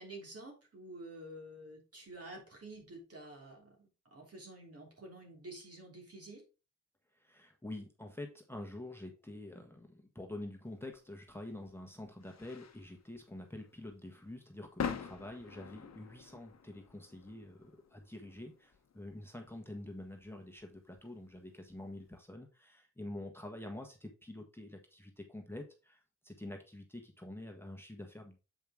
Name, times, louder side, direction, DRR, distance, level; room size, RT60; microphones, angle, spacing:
voice 1, 0.0-6.4, right 1 dB, 50° right, 0 dB, 3.1 m, -50 dB
voice 2, 7.2-28.4, left 1 dB, 5° left, 3 dB, 1.3 m, -47 dB
sound 1, 10.9-22.2, left 7 dB, 55° left, 0.9 m, -47 dB
7.5 x 5.0 x 3.6 m, 0.32 s
cardioid pair, 55°, 31 cm